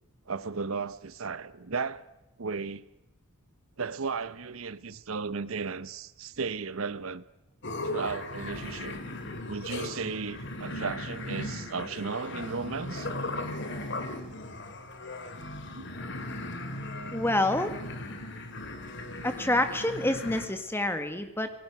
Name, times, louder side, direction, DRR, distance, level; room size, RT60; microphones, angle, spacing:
voice 1, 0.3-2.0 2.4-2.8 3.8-7.2 7.8-9.0 9.5-13.1 15.7-15.9, right 5 dB, 70° right, 0.8 m, -35 dB
sound 1, 7.6-20.5, left 2 dB, 55° left, 2.5 m, -37 dB
voice 2, 17.1-17.8 19.2-21.5, left 1 dB, 10° left, 1.6 m, -27 dB
28.0 x 19.5 x 6.0 m
head